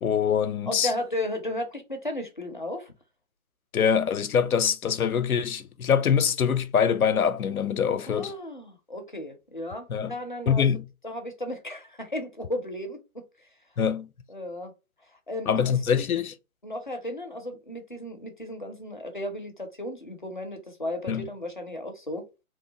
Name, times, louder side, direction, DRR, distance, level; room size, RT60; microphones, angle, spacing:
voice 1, 0.0-0.9 3.7-8.3 9.9-10.1 10.5-10.8 13.8-14.1 15.5-16.3 21.1-21.3, left 7 dB, 90° left, 0.5 m, -24 dB
voice 2, 0.7-2.9 8.1-10.7 11.0-13.2 14.3-14.7 15.3-16.1 16.6-22.3, left 1 dB, 40° left, 0.4 m, -34 dB
2.9 x 2.1 x 2.6 m
figure-of-eight pair, 150°, 42 cm